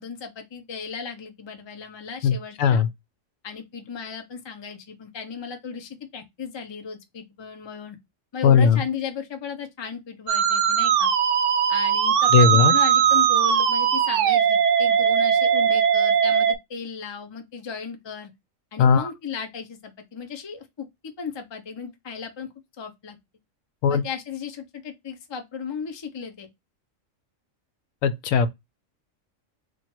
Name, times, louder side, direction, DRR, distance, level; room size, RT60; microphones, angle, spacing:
voice 1, 0.0-2.8 3.4-8.0 8.3-11.1 11.7-18.3 18.7-22.5 22.8-23.2 23.9-26.5, left 6 dB, 30° left, 0.5 m, -35 dB
voice 2, 2.2-2.9 8.4-8.8 12.3-12.7 18.8-19.1 23.8-24.0 28.0-28.5, left 6 dB, 85° left, 1.0 m, -18 dB
Musical instrument, 10.3-16.6, right 8 dB, 70° right, 0.9 m, -20 dB
3.0 x 2.5 x 4.3 m
omnidirectional pair, 1.4 m